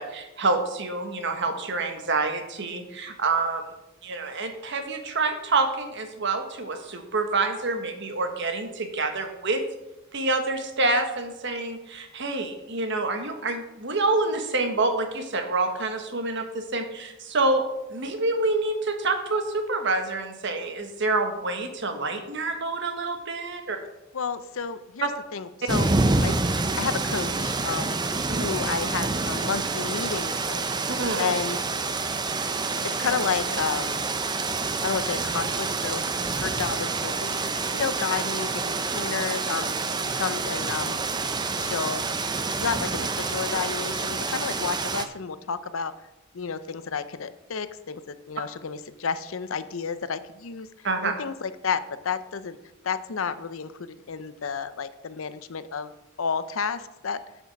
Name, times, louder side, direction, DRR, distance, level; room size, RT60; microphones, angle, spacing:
voice 1, 0.0-3.7 4.0-9.6 10.1-17.6 17.9-23.8 28.3-28.5 31.0-31.2 50.8-51.1, right 3 dB, 60° right, 6 dB, 1.3 m, -27 dB
voice 2, 24.1-25.9 26.2-28.0 28.4-31.6 32.8-34.0 34.8-37.4 37.7-39.7 40.0-41.0 41.6-42.0 42.6-45.9 46.3-52.6 52.8-55.9 56.2-57.2, left 5 dB, 75° left, 13 dB, 0.6 m, -31 dB
sound 1, 25.7-45.1, right 3 dB, 20° right, 0.6 m, -27 dB
8.2 x 7.3 x 5.9 m, 0.98 s
head